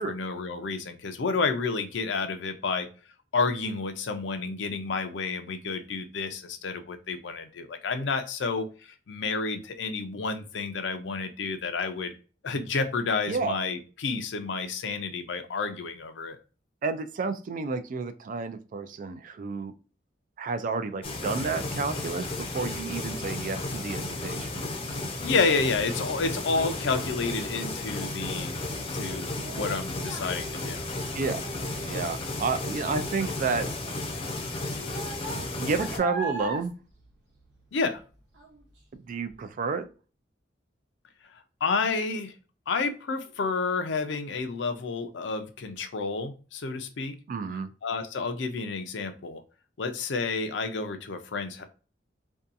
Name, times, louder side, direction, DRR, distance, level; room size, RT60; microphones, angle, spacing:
voice 1, 0.0-2.9 3.3-12.2 12.4-16.4 25.2-28.6 28.9-30.9 37.7-38.0 41.6-42.3 42.7-47.2 47.8-49.4 49.8-51.6, left 4 dB, 80° left, 8 dB, 0.5 m, -30 dB
voice 2, 16.8-19.7 20.4-22.3 22.5-24.6 31.1-33.7 35.3-36.7 38.9-39.8 47.3-47.7, right 4 dB, 45° right, 10 dB, 0.3 m, -31 dB
sound 1, 21.0-36.0, left 2 dB, 30° left, 0.5 m, -34 dB
Child speech kid speaking, 26.5-38.0 38.3-38.8 39.3-39.4, right 3 dB, 75° right, 0.9 m, -41 dB
2.6 x 2.3 x 2.5 m, 0.35 s
head